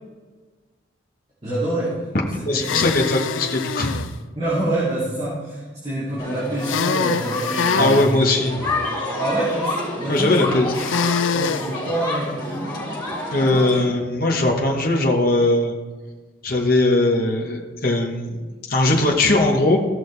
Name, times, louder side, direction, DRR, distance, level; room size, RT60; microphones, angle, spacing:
voice 1, 1.4-2.1 2.4-2.9 4.3-8.3 9.2-10.8 11.3-12.6, right 1 dB, 30° right, -9 dB, 2.6 m, -26 dB
voice 2, 2.5-3.9 7.8-8.7 10.1-10.7 13.3-15.7 16.4-19.8, left 2 dB, 45° left, -1 dB, 1.2 m, -20 dB
sound 1, 2.6-4.1 6.6-8.1 10.7-11.7, left 6 dB, 75° left, 0.4 m, -24 dB
sound 2, 6.2-13.8, left 2 dB, 20° left, 3.5 m, -29 dB
15.5 x 6.4 x 3.3 m, 1.4 s
head